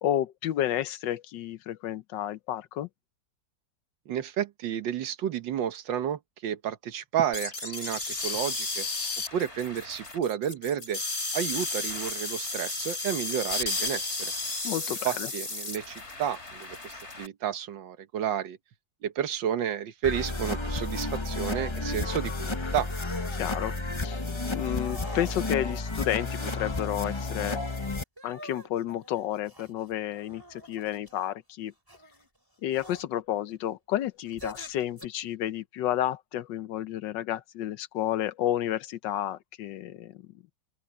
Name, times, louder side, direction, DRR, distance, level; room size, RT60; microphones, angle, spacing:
voice 1, 0.0-2.9 14.6-15.3 23.4-23.7 24.0-24.2 24.5-27.6 28.2-31.7 32.6-40.2, left 12 dB, 80° left, 1.5 m, -31 dB
voice 2, 4.1-8.9 9.3-11.0 11.3-14.3 15.0-18.6 19.0-22.9, right 9 dB, 90° right, 1.8 m, -31 dB
sound 1, 7.3-17.3, left 3 dB, 35° left, 3.7 m, -33 dB
sound 2, 20.0-28.0, left 2 dB, 20° left, 0.9 m, -32 dB
sound 3, 20.1-20.5 20.9-21.2 21.8-22.1 22.8-23.7 24.6-25.8 26.6-27.8 28.2-31.3 31.9-32.3 32.7-33.0 34.2-35.0, equal, 10° right, 6.1 m, -46 dB
open air
omnidirectional pair, 2.0 m